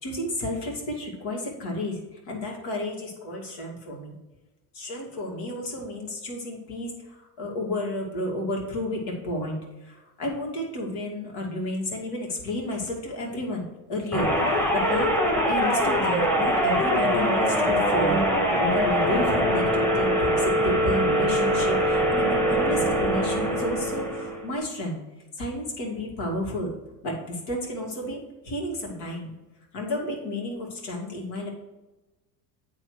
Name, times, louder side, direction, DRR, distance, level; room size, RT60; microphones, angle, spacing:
voice 1, 0.0-4.2 4.7-9.6 9.8-18.1 18.6-25.0 25.4-26.7 27.0-29.3 29.7-31.5, left 1 dB, 75° left, -1 dB, 2.3 m, -32 dB
sound 1, 14.1-24.5, equal, 5° left, 1.3 m, -23 dB
9.0 x 3.4 x 4.7 m, 1.1 s
supercardioid pair, 110°, 49 cm